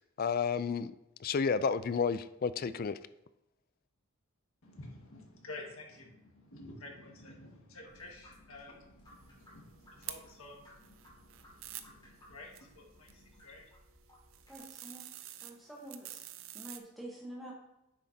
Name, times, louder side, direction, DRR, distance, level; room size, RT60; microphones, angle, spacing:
voice 1, 0.2-0.9 1.2-3.0, left 5 dB, 40° left, 14 dB, 0.3 m, -31 dB
voice 2, 4.6-13.7, left 2 dB, 75° left, 0 dB, 1.7 m, -51 dB
sound 1, 7.8-14.6, equal, 20° left, 2.2 m, -61 dB
sound 2, 9.1-16.8, right 12 dB, 65° right, 0.6 m, -50 dB
voice 3, 14.5-15.0 15.4-16.2 16.5-17.5, right 1 dB, ahead, -5 dB, 1.1 m, -47 dB
9.6 x 7.4 x 2.8 m, 0.90 s
head